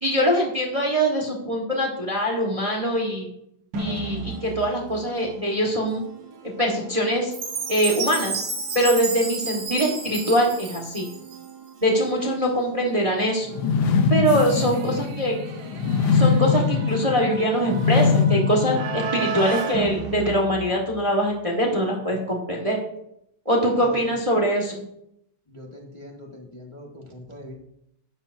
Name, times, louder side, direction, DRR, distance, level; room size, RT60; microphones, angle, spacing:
voice 1, 0.0-3.3 3.8-6.0 6.4-7.3 7.7-8.4 8.7-11.1 11.8-13.5 14.1-15.4 16.1-22.8 23.4-24.8, equal, 20° right, 0 dB, 1.3 m, -23 dB
sound 1, 3.7-21.5, right 4 dB, 60° right, 1.6 m, -37 dB
Chime, 7.3-11.5, right 5 dB, 85° right, 2.5 m, -31 dB
sound 2, 13.5-19.6, left 5 dB, 85° left, 1.7 m, -22 dB
voice 2, 23.7-24.2 25.5-27.5, left 1 dB, 15° left, -1 dB, 1.2 m, -41 dB
12.5 x 10.0 x 2.6 m, 0.79 s
omnidirectional pair, 2.1 m